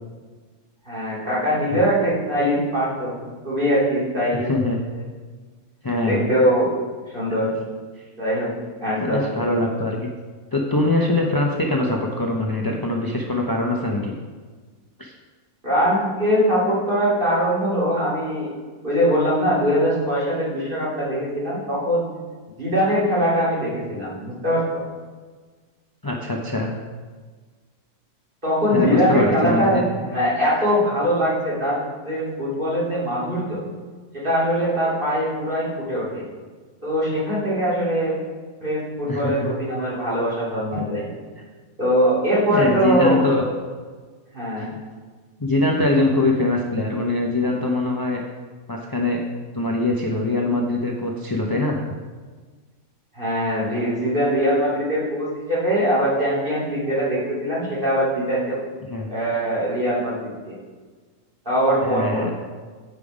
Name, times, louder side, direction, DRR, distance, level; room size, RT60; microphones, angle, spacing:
voice 1, 0.8-4.5 4.9-5.0 6.0-6.7 7.1-7.5 8.2-8.5 8.8-9.5 15.6-18.5 18.8-22.1 22.6-24.8 28.4-33.6 34.1-36.2 36.8-38.2 38.6-41.0 41.8-43.2 44.3-44.7 53.1-58.6 59.1-60.6 61.4-62.3, equal, 35° right, -8 dB, 2.9 m, -22 dB
voice 2, 5.8-6.2 9.0-10.1 10.5-14.2 15.0-15.1 26.0-26.7 28.7-29.8 39.1-39.5 40.7-40.8 42.5-43.4 45.4-48.2 48.7-49.2 49.5-51.8 58.8-59.1 61.9-62.3, left 2 dB, 30° left, -1 dB, 0.4 m, -22 dB
8.2 x 5.4 x 4.9 m, 1.5 s
omnidirectional pair, 1.5 m